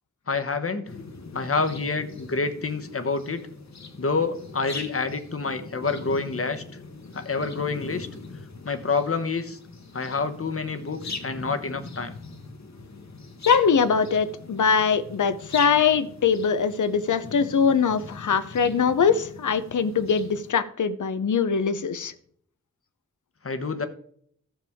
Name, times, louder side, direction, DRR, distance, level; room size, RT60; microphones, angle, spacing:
voice 1, 0.3-1.0 1.3-3.5 4.0-6.6 7.1-8.1 8.6-9.6 9.9-12.1 23.4-23.9, left 4 dB, 50° left, 10 dB, 1.0 m, -28 dB
sound 1, 0.9-20.5, left 3 dB, 65° left, 1.3 m, -41 dB
voice 2, 13.5-22.1, left 6 dB, 90° left, 14 dB, 0.7 m, -22 dB
13.5 x 6.9 x 3.5 m, 0.62 s
wide cardioid pair, 90°, 29 cm